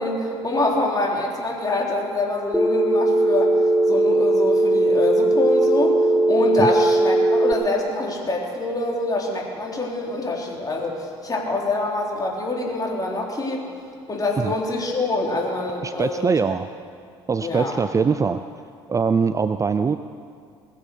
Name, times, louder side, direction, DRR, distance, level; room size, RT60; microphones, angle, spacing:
voice 1, 0.0-3.5 3.9-13.6 14.1-16.3 17.4-17.8, left 2 dB, 25° left, -1 dB, 3.7 m, -25 dB
Telephone, 2.5-7.5, right 1 dB, ahead, 1.0 m, -18 dB
voice 2, 15.8-16.7 17.3-18.4 18.9-20.0, right 5 dB, 25° right, 11 dB, 0.5 m, -22 dB
20.5 x 7.5 x 6.8 m, 2.2 s
hypercardioid pair, 55°, 14 cm